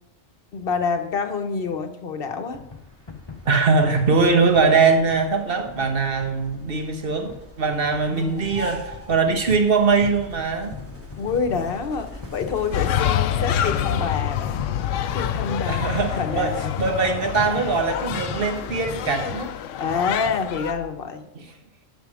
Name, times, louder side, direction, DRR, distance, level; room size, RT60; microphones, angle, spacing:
voice 1, 0.5-2.6 7.9-8.3 11.2-14.7 14.9-16.8 19.8-21.3, left 5 dB, 50° left, 7 dB, 1.1 m, -27 dB
sound 1, 2.5-20.9, left 4 dB, 25° left, 0.6 m, -40 dB
sound 2, 2.6-12.9, left 1 dB, 10° right, 1.3 m, -43 dB
voice 2, 3.5-10.7 15.7-19.5 21.3-21.5, right 4 dB, 50° right, 5 dB, 1.3 m, -21 dB
sound 3, 12.7-20.7, left 10 dB, 80° left, 1.0 m, -27 dB
9.0 x 6.2 x 6.3 m, 0.96 s
omnidirectional pair, 1.3 m